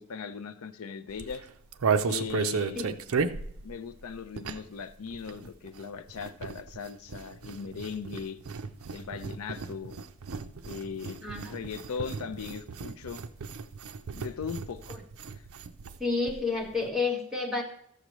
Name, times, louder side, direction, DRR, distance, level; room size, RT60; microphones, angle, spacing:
voice 1, 0.0-1.5 2.0-3.0 3.6-8.4 8.9-9.9 10.6-13.2 14.1-14.9 15.3-15.4, left 6 dB, 75° left, 13 dB, 0.5 m, -39 dB
sound 1, 1.1-4.8 5.1-16.0 16.3-16.4 16.6-16.9, right 5 dB, 70° right, 0.5 m, -34 dB
voice 2, 2.7-3.1 11.2-11.5 14.9-15.0 16.0-17.6, left 4 dB, ahead, -2 dB, 1.4 m, -30 dB
14.0 x 6.5 x 3.1 m, 0.71 s
head